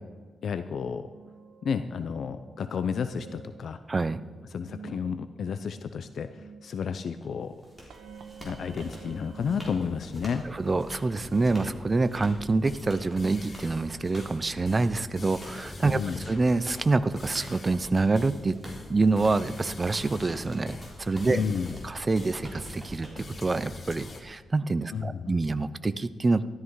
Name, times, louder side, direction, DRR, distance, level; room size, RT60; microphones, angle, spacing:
voice 1, 0.4-1.1 1.6-3.8 4.5-7.5 8.4-10.4 15.9-16.2 21.3-21.8 24.9-25.4, left 6 dB, 65° left, 10 dB, 0.6 m, -31 dB
sound 1, 1.1-9.7, right 6 dB, 85° right, 1.4 m, -49 dB
voice 2, 3.9-4.2 10.4-16.0 16.3-18.6 18.9-21.4 21.8-26.4, right 3 dB, 25° right, 13 dB, 0.6 m, -26 dB
sound 2, 7.2-23.8, equal, ahead, 3.8 m, -48 dB
sound 3, 10.1-24.2, left 2 dB, 40° left, 1.6 m, -44 dB
13.0 x 13.0 x 4.7 m, 1.5 s
wide cardioid pair, 120°, 0 cm